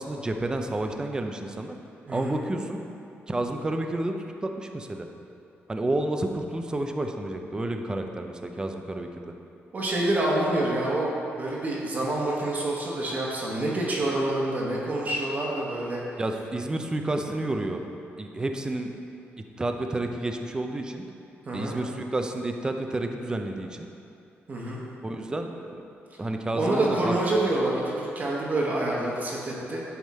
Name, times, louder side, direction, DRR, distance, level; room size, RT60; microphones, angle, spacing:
voice 1, 0.0-1.8 2.1-2.8 3.3-4.2 4.4-5.1 5.7-9.1 16.2-17.8 18.2-18.9 19.4-21.0 21.5-23.9 25.0-25.8 26.2-27.1, right 2 dB, 15° right, 5 dB, 0.4 m, -30 dB
voice 2, 2.1-2.4 9.7-16.0 21.4-21.8 24.5-24.8 26.5-29.8, right 1 dB, 40° right, -4 dB, 1.0 m, -27 dB
9.4 x 3.5 x 4.2 m, 2.7 s
wide cardioid pair, 130°, 5 cm